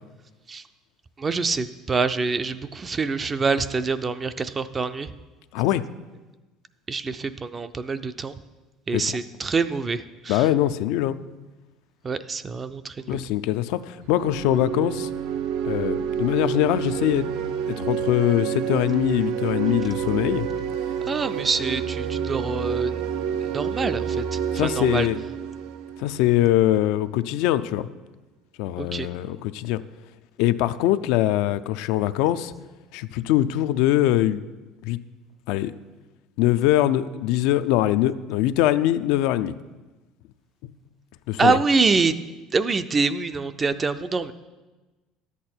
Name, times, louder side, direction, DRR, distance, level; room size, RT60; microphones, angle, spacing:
voice 1, 1.2-5.1 6.9-8.3 8.9-10.5 12.0-13.2 21.1-23.0 23.4-25.1 28.8-29.1 41.4-42.2 42.5-44.3, right 4 dB, 20° right, 12 dB, 0.4 m, -25 dB
voice 2, 10.3-11.2 13.1-15.1 15.6-17.3 17.7-20.5 24.5-25.2 26.0-27.9 28.6-29.8 30.4-32.5 32.9-34.4 34.9-35.0 35.5-35.7 36.4-39.5 41.3-41.6, left 13 dB, 75° left, 12 dB, 0.4 m, -22 dB
sound 1, 14.0-26.7, right 8 dB, 70° right, 0.5 m, -28 dB
11.0 x 8.3 x 4.4 m, 1.2 s
cardioid pair, 150°, 0 cm